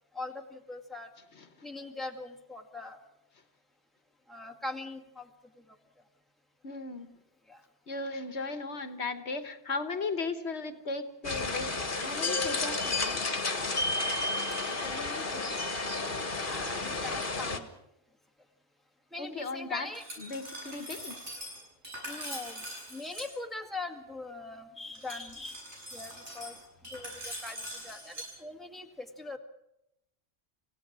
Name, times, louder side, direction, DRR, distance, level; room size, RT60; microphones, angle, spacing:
voice 1, 0.1-1.1 1.6-3.0 4.3-5.3 7.5-7.6 14.6-15.9 16.4-17.7 19.1-20.0 22.1-22.6 22.9-25.6 25.9-26.6 26.9-29.4, left 2 dB, ahead, 3 dB, 2.0 m, -41 dB
voice 2, 1.3-1.7 6.6-7.1 7.9-13.2 19.2-19.9 20.2-21.2, left 3 dB, 70° left, 9 dB, 1.6 m, -36 dB
sound 1, 11.2-17.6, left 3 dB, 50° left, 1.8 m, -32 dB
Glass, 19.9-23.3 24.9-28.3, equal, 85° right, 8.2 m, -43 dB
28.0 x 16.5 x 6.2 m, 0.83 s
omnidirectional pair, 1.2 m